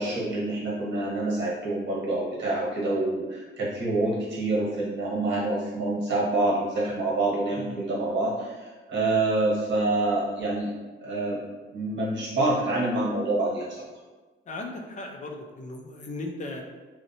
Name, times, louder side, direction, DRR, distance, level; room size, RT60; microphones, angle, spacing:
voice 1, 0.0-10.7 11.0-11.4 11.7-13.9, right 2 dB, 65° right, -5 dB, 1.0 m, -27 dB
voice 2, 7.5-7.9 14.5-16.6, left 2 dB, 40° left, 2 dB, 0.4 m, -37 dB
2.7 x 2.1 x 2.7 m, 1.3 s
cardioid pair, 90°, 20 cm